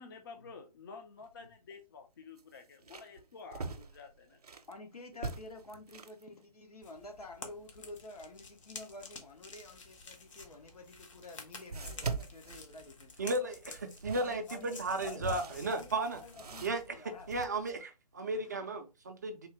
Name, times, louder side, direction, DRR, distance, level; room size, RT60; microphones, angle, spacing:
voice 1, 0.0-4.4, left 4 dB, 35° left, 0.5 m, -50 dB
sound 1, 1.2-1.3 1.7-1.8 2.4-4.7 5.1-6.2 10.5-10.6 11.7-13.3 13.8-17.5, right 4 dB, 70° right, 0.6 m, -42 dB
voice 2, 4.7-13.5 14.2-14.7 15.0-17.3 18.3-18.4, left 3 dB, 70° left, 1.2 m, -50 dB
sound 2, 6.8-17.8, left 4 dB, 50° left, 0.9 m, -52 dB
voice 3, 13.2-16.2 16.6-19.5, right 2 dB, 25° right, 0.4 m, -35 dB
3.6 x 2.7 x 3.4 m
figure-of-eight pair, 145°, 20 cm